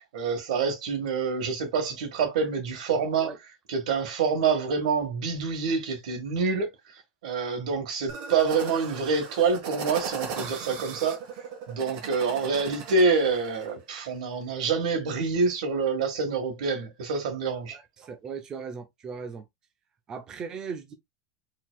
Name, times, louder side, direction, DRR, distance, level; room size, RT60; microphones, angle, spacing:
voice 1, 0.0-3.3 3.7-6.7 7.2-11.2 11.7-17.8, right 4 dB, 80° right, 1.7 m, -26 dB
sound 1, 8.1-13.7, right 6 dB, 45° right, 1.4 m, -38 dB
voice 2, 17.7-19.4 20.1-20.9, right 5 dB, 20° right, 0.6 m, -38 dB
4.6 x 3.8 x 2.3 m
supercardioid pair, 175°, 4 cm